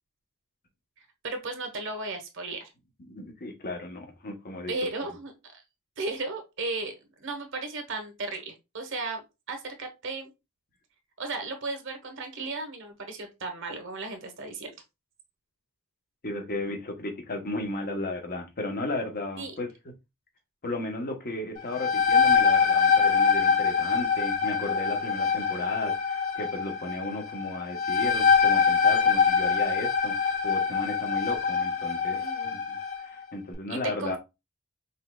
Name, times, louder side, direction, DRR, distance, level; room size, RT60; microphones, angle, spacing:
voice 1, 1.0-2.7 4.7-5.6 6.0-10.3 11.2-14.7 19.4-19.6 32.1-32.6 33.7-34.2, right 3 dB, 60° right, 1.2 m, -35 dB
voice 2, 3.0-4.7 16.2-19.7 20.6-32.8 33.0-34.2, left 2 dB, 45° left, 1.1 m, -34 dB
sound 1, 21.6-33.0, left 6 dB, 65° left, 1.6 m, -24 dB
5.5 x 3.2 x 2.3 m
head